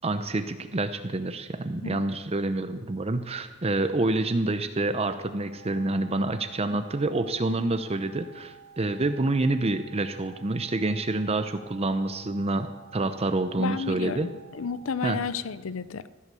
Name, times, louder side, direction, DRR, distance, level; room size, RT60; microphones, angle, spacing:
voice 1, 0.0-12.7 12.9-14.3 15.0-15.2, right 2 dB, 30° right, 9 dB, 0.7 m, -27 dB
sound 1, 5.4-15.2, right 7 dB, 30° left, 3.9 m, -51 dB
voice 2, 13.6-16.1, left 5 dB, 75° left, 16 dB, 0.6 m, -32 dB
16.0 x 11.5 x 6.8 m, 1.3 s
head